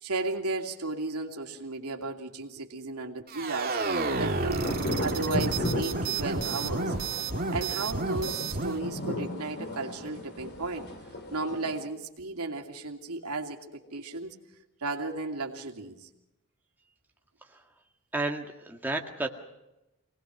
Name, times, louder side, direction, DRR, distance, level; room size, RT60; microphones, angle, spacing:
voice 1, 0.0-4.7 5.0-7.0 7.5-10.9 11.3-14.3 14.8-16.1, right 3 dB, 85° right, 3 dB, 2.7 m, -34 dB
sound 1, 3.3-8.8, right 3 dB, 40° right, 2.1 m, -31 dB
sound 2, 3.8-11.8, left 1 dB, 50° left, 3.4 m, -36 dB
voice 2, 18.1-19.3, right 2 dB, 10° right, 1 dB, 1.9 m, -32 dB
26.0 x 19.5 x 6.1 m, 0.93 s
head